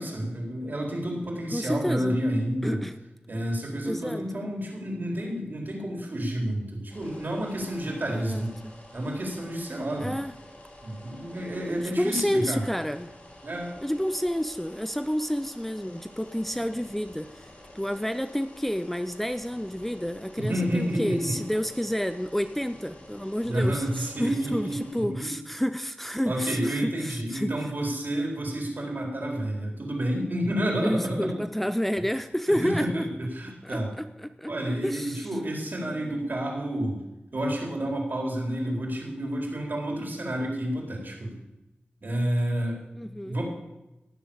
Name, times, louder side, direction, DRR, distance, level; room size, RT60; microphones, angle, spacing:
voice 1, 0.0-2.8 3.3-8.5 8.9-10.1 10.8-12.6 13.4-13.7 20.4-21.4 23.4-25.3 26.3-31.4 32.5-33.9 34.5-37.0 37.3-41.4 42.0-42.8 43.2-43.4, right 1 dB, 55° right, 0 dB, 4.0 m, -30 dB
voice 2, 1.5-2.2 2.6-2.9 3.9-4.4 8.1-8.7 10.0-10.3 11.6-13.1 13.8-17.5 17.7-27.5 30.8-33.1 33.6-35.3 35.9-36.4 42.9-43.4, equal, 5° left, 10 dB, 0.5 m, -30 dB
sound 1, 6.9-25.0, left 1 dB, 35° left, 6.9 m, -49 dB
17.5 x 7.3 x 7.2 m, 0.98 s
wide cardioid pair, 70°, 4 cm